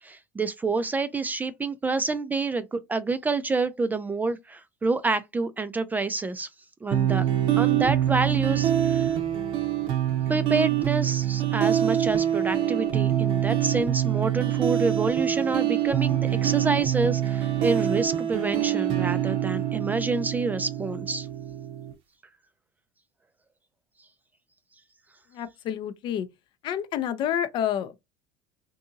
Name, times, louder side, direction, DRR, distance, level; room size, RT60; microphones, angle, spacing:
voice 1, 0.0-6.5 6.8-7.3 7.6-9.1 10.3-21.3, right 3 dB, 15° right, 0.3 m, -28 dB
sound 1, 6.9-21.9, right 11 dB, 60° right, 0.7 m, -25 dB
voice 2, 25.3-26.3 26.6-28.0, left 10 dB, 50° left, 0.5 m, -29 dB
2.7 x 2.6 x 2.4 m
hypercardioid pair, 85°, 10 cm